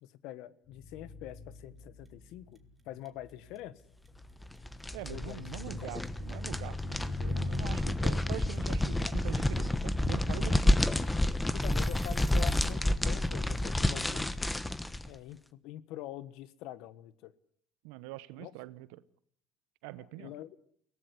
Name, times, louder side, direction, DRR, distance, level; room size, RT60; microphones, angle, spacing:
voice 1, 0.0-2.6 2.9-3.8 5.1-5.4 5.8-5.9 11.5-14.3 15.1-17.3 18.4-18.5 20.0-20.6, left 13 dB, 75° left, 1.2 m, -45 dB
sound 1, 0.7-12.3 13.1-13.3, left 3 dB, 50° left, 6.3 m, -42 dB
sound 2, 1.5-12.8, right 2 dB, 10° right, 2.6 m, -56 dB
sound 3, 4.4-15.1, left 1 dB, 10° left, 1.2 m, -30 dB
voice 2, 4.9-10.8 17.8-19.0 19.8-20.3, right 17 dB, 85° right, 0.9 m, -43 dB
23.0 x 17.5 x 9.8 m
supercardioid pair, 90°, 0 cm